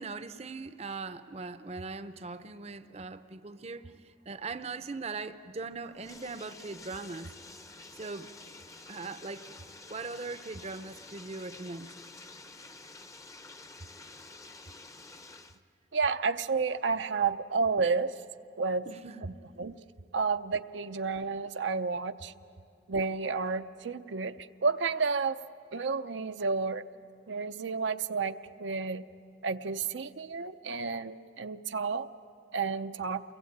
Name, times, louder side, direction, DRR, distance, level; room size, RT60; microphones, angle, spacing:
voice 1, 0.0-7.3 7.9-8.3 8.9-9.5 9.9-11.9 18.9-19.3, right 3 dB, 35° right, 0.6 m, -40 dB
Bathtub (filling or washing), 5.8-15.6, left 3 dB, 15° left, 0.7 m, -50 dB
voice 2, 15.9-18.2 18.6-18.9 19.2-19.7 20.1-22.3 22.9-25.4 25.7-26.8 27.3-29.0 29.4-32.1 32.5-33.2, right 4 dB, 80° right, 0.6 m, -31 dB
28.5 x 23.0 x 8.6 m
head